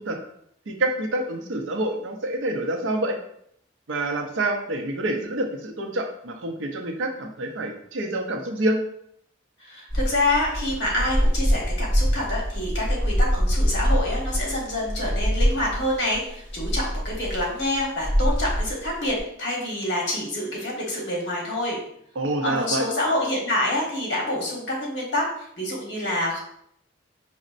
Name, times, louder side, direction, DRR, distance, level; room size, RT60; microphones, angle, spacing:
voice 1, 0.7-3.2 3.9-8.8 22.2-22.9, right 1 dB, 85° right, 3 dB, 0.6 m, -27 dB
voice 2, 9.6-21.8 22.4-25.3 25.6-26.4, left 1 dB, 60° left, -3 dB, 1.2 m, -27 dB
sound 1, 9.9-19.2, equal, 20° left, 1.1 m, -24 dB
5.0 x 2.1 x 2.5 m, 0.69 s
head